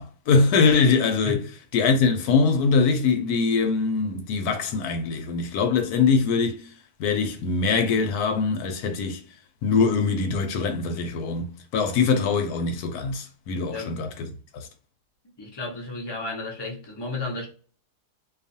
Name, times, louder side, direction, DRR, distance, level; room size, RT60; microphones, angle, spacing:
voice 1, 0.0-1.4 1.7-6.7 7.0-9.2 9.6-14.1, left 4 dB, 75° left, 1.1 m, -22 dB
voice 2, 13.7-14.0 15.4-17.5, left 3 dB, 30° left, 0.4 m, -33 dB
2.6 x 2.4 x 2.6 m
omnidirectional pair, 1.8 m